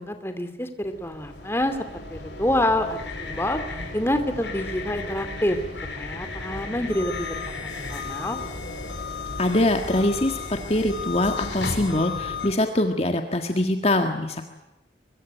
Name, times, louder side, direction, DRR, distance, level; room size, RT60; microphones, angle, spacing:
voice 1, 0.0-3.6 3.9-5.6 6.0-8.4, left 1 dB, 15° left, 8 dB, 2.6 m, -27 dB
sound 1, 0.8-12.5, left 3 dB, 80° left, 5.5 m, -34 dB
voice 2, 9.4-14.4, left 1 dB, 35° left, 5 dB, 1.7 m, -23 dB
24.0 x 23.0 x 9.1 m, 0.90 s
head